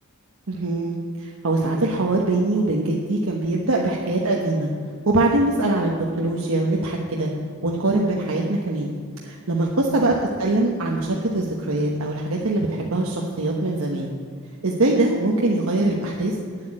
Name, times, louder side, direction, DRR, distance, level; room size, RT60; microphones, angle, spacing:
voice 1, 0.5-4.7 5.0-5.9 6.2-7.3 7.6-8.9 9.2-14.1 14.6-16.3, right 2 dB, 90° right, -1 dB, 1.1 m, -22 dB
9.5 x 7.9 x 8.8 m, 2.1 s
head